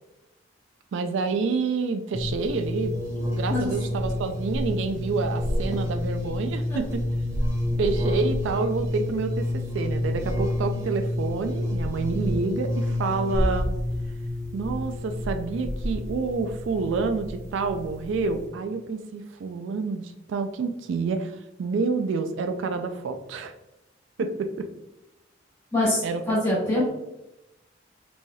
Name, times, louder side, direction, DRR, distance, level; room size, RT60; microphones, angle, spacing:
voice 1, 0.9-2.9 3.3-7.0 7.8-13.7 14.5-23.5 24.2-24.7 26.0-26.4 26.8-26.9, right 4 dB, 70° right, 7 dB, 0.3 m, -28 dB
sound 1, 2.1-18.5, left 1 dB, 15° right, 0.5 m, -29 dB
voice 2, 25.7-26.9, left 1 dB, 25° left, -8 dB, 1.4 m, -24 dB
4.0 x 3.2 x 2.2 m, 0.93 s
head